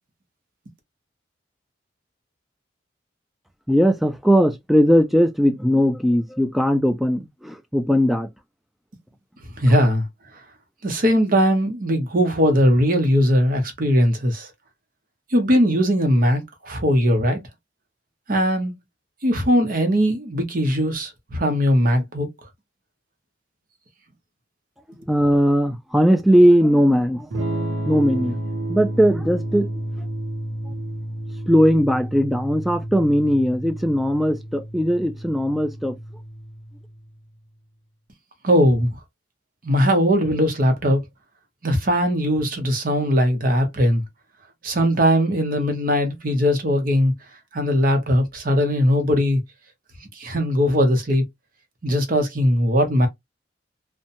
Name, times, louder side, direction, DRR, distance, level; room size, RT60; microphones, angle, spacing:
voice 1, 3.7-8.3 25.1-27.3 27.9-28.4 28.7-29.7 30.7-30.8 31.5-36.0, equal, ahead, 0.3 m, -19 dB
voice 2, 9.6-10.0 10.8-14.5 15.3-17.4 18.3-18.7 19.2-22.3 38.4-38.9 39.6-41.0 41.6-44.0 44.6-47.1 47.5-49.4 50.1-51.2 51.8-53.1, equal, 50° right, 0.8 m, -19 dB
Electric guitar / Strum, 27.3-37.1, right 1 dB, 85° right, 0.8 m, -31 dB
2.8 x 2.2 x 2.5 m
head